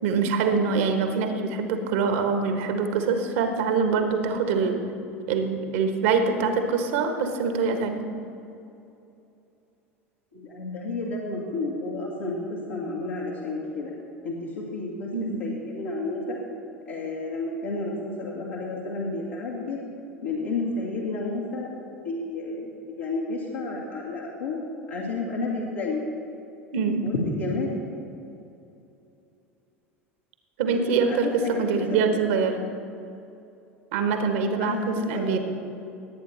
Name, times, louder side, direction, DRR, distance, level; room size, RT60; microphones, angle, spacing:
voice 1, 0.0-4.8 5.3-8.0 15.1-15.4 26.7-27.1 30.6-32.6 33.9-35.4, right 5 dB, 60° right, 6 dB, 1.3 m, -24 dB
voice 2, 10.3-13.9 14.2-15.1 15.4-16.4 16.9-19.8 20.2-21.7 22.0-22.7 23.0-24.6 24.9-26.0 27.0-27.7 30.7-30.8 31.1-32.0 34.6-35.4, left 3 dB, 75° left, -6 dB, 2.0 m, -31 dB
18.5 x 8.8 x 4.3 m, 2.8 s
figure-of-eight pair, 75°, 7 cm